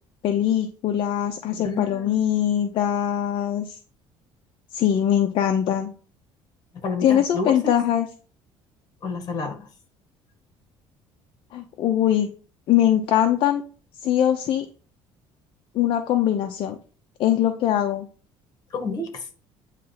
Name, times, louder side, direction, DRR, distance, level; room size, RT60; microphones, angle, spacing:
voice 1, 0.2-3.8 4.7-5.9 7.0-8.1 11.5-12.3 12.7-13.6 14.0-14.7 15.7-16.8 17.2-18.1, left 10 dB, 55° left, 5 dB, 0.8 m, -22 dB
voice 2, 1.6-2.3 6.7-7.7 9.0-9.7 18.7-19.3, left 3 dB, 35° left, 5 dB, 1.8 m, -30 dB
9.1 x 3.3 x 5.8 m, 0.39 s
cardioid pair, 155°, 11 cm